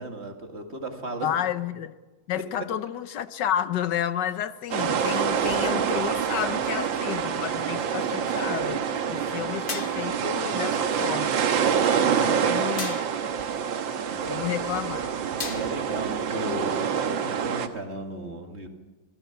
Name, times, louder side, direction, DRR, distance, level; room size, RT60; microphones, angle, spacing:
voice 1, 0.0-1.3 2.3-2.4 6.5-7.1 12.0-12.4 14.0-14.5 15.5-18.7, right 1 dB, 35° right, 2.3 m, -35 dB
voice 2, 1.2-1.9 2.3-11.5 12.0-13.0 14.3-15.1, left 10 dB, 70° left, 1.4 m, -31 dB
sound 1, 4.7-17.7, right 7 dB, 85° right, 1.9 m, -26 dB
sound 2, 9.7-10.3 12.8-13.3 15.4-16.0, left 4 dB, 35° left, 1.1 m, -36 dB
25.5 x 16.5 x 7.2 m
omnidirectional pair, 2.0 m